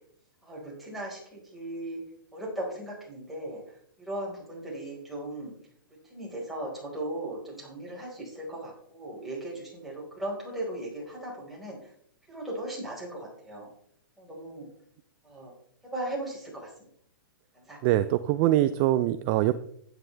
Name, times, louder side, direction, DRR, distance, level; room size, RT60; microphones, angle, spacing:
voice 1, 0.4-2.0 2.3-5.5 6.1-11.8 12.3-13.7 14.2-14.7 15.2-15.5 15.9-16.7 17.5-17.8, right 1 dB, ahead, -5 dB, 4.7 m, -37 dB
voice 2, 17.8-19.5, right 14 dB, 30° right, 12 dB, 0.5 m, -23 dB
13.0 x 9.9 x 3.4 m, 0.65 s
hypercardioid pair, 150°, 12 cm